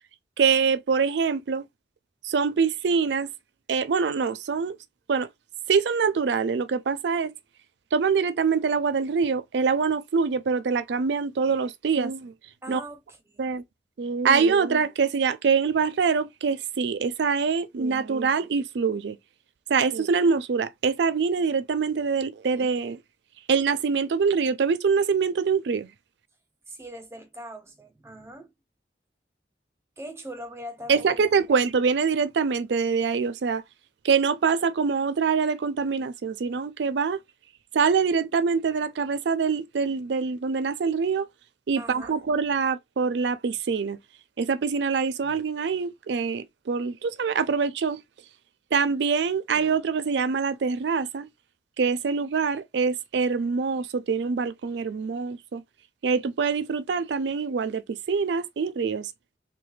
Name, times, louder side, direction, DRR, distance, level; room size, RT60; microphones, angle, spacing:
voice 1, 0.4-1.6 2.2-3.3 3.7-4.8 5.1-5.3 5.7-7.3 7.9-12.3 12.7-12.8 13.4-13.6 14.0-19.2 19.7-23.0 23.5-25.9 30.9-33.6 34.0-37.2 37.7-41.3 41.7-44.0 44.4-48.0 48.7-51.3 51.8-55.6 56.0-59.1, right 5 dB, 75° right, 0.4 m, -24 dB
voice 2, 12.6-13.5 26.7-28.5 30.0-31.2 31.5-31.6 41.8-42.2, equal, 15° right, 0.6 m, -41 dB
3.2 x 2.2 x 3.1 m
head